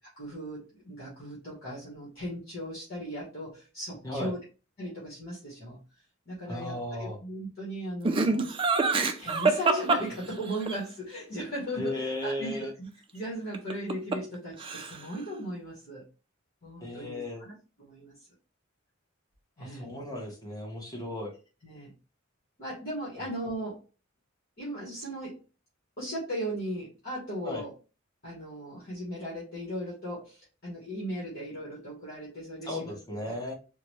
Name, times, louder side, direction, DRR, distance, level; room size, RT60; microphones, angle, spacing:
voice 1, 0.2-4.4 4.8-5.8 6.3-8.5 9.2-16.0 16.6-18.1 19.6-19.9 21.6-21.9 22.6-23.8 24.6-25.4 26.0-27.7 28.2-32.9 33.3-33.4, equal, 50° left, -6 dB, 1.3 m, -37 dB
voice 2, 6.5-7.2 11.8-12.7 16.8-17.5 19.6-21.3 27.4-27.6 32.6-33.5, left 1 dB, 20° left, 0 dB, 1.0 m, -35 dB
Laughter, 8.0-10.7 13.5-14.3 14.6-15.2, right 3 dB, 25° right, 0.4 m, -26 dB
3.8 x 2.2 x 3.0 m, 0.32 s
head